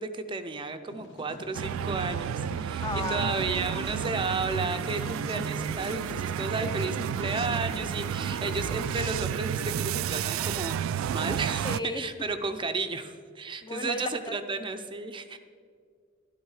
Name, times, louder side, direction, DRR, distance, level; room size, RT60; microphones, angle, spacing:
voice 1, 0.0-15.4, right 3 dB, 25° right, 8 dB, 0.5 m, -33 dB
sound 1, 0.9-10.0, left 1 dB, 65° left, 1.2 m, -43 dB
sound 2, 1.5-11.8, right 9 dB, 85° right, 0.3 m, -31 dB
voice 2, 2.8-3.4 11.6-12.1 13.6-14.3, left 3 dB, 20° left, 8 dB, 0.6 m, -34 dB
12.5 x 11.0 x 4.8 m, 2.1 s
head